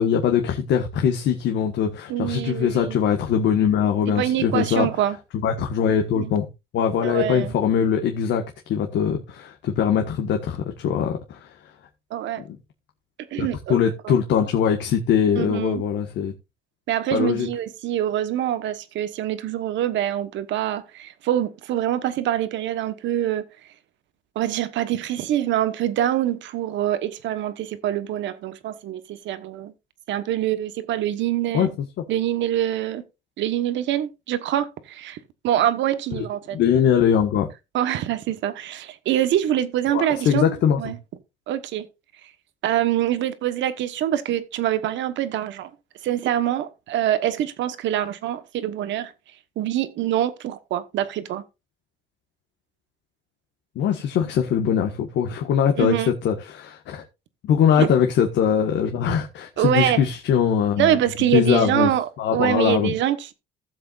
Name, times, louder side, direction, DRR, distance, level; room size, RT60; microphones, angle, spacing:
voice 1, 0.0-4.9 5.4-6.5 6.7-11.5 12.5-12.6 13.4-16.3 17.1-17.5 31.5-31.7 36.1-36.2 36.5-37.5 39.9-40.9 53.7-55.9 56.2-57.0 57.4-61.0 61.3-61.9 62.2-62.9, left 8 dB, 80° left, 1.5 m, -22 dB
voice 2, 2.1-3.0 4.1-5.2 6.1-6.3 7.0-7.5 12.1-12.4 13.3-14.1 15.3-15.8 16.9-23.4 24.3-29.7 30.1-31.7 32.1-33.0 33.4-35.2 35.4-36.6 37.7-41.0 41.5-41.9 42.2-42.3 42.6-45.7 46.0-49.1 49.6-51.4 55.8-56.1 57.8-57.9 59.6-60.0 60.8-63.3, right 12 dB, 85° right, 1.2 m, -25 dB
16.0 x 7.7 x 2.5 m
cardioid pair, 120°, 19 cm